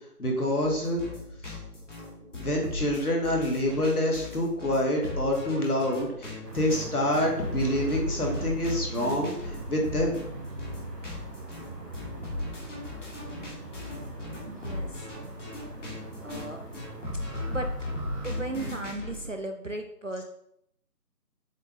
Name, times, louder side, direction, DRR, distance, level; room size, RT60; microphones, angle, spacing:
voice 1, 0.2-1.0 1.5-1.6 2.3-10.2, left 1 dB, 65° left, 0 dB, 2.0 m, -27 dB
sound 1, 0.6-19.2, left 2 dB, 50° left, 2.1 m, -37 dB
sound 2, 6.4-18.8, right 2 dB, 90° right, 1.6 m, -42 dB
voice 2, 14.5-14.9 16.2-16.6 17.5-17.7 18.2-20.2, right 2 dB, 55° right, 5 dB, 0.5 m, -35 dB
7.4 x 3.7 x 3.6 m, 0.73 s
figure-of-eight pair, 165°, 48 cm